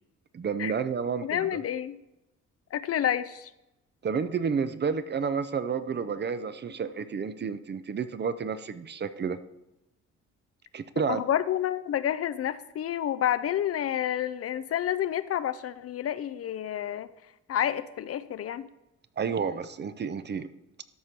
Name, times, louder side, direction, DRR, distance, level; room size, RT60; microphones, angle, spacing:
voice 1, 0.3-1.5 4.0-9.4 10.7-11.2 19.2-20.5, right 6 dB, 35° right, 12 dB, 0.6 m, -30 dB
voice 2, 1.2-2.0 2.7-3.5 11.1-17.1 17.5-18.7, left 10 dB, 50° left, 14 dB, 0.5 m, -29 dB
13.0 x 4.3 x 4.7 m, 0.91 s
cardioid pair, 90°, 30 cm